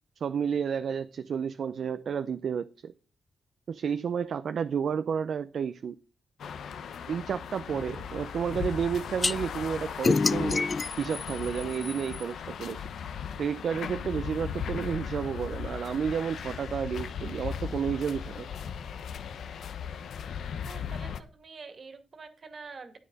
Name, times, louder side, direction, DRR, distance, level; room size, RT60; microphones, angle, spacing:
voice 1, 0.2-2.9 3.7-5.9 7.1-10.7 11.0-12.9 13.4-18.5, right 7 dB, 70° right, 0.5 m, -31 dB
sound 1, 6.4-21.2, left 7 dB, 80° left, 0.8 m, -37 dB
voice 2, 7.9-8.3 20.6-23.0, right 4 dB, 55° right, 2.1 m, -46 dB
sound 2, 9.2-9.3 10.0-12.2, left 4 dB, 40° left, 0.4 m, -27 dB
9.9 x 9.4 x 4.0 m
cardioid pair, 70°, 0 cm